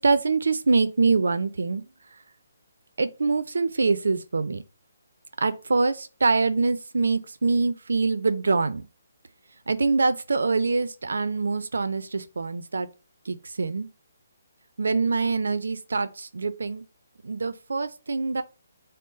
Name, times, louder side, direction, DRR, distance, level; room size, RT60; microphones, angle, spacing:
voice 1, 0.0-1.9 3.0-4.6 5.4-8.8 9.7-12.9 13.3-13.9 14.8-16.8 17.2-18.4, right 4 dB, 80° right, 0.4 m, -24 dB
3.8 x 2.0 x 3.9 m
hypercardioid pair, 155°, 0 cm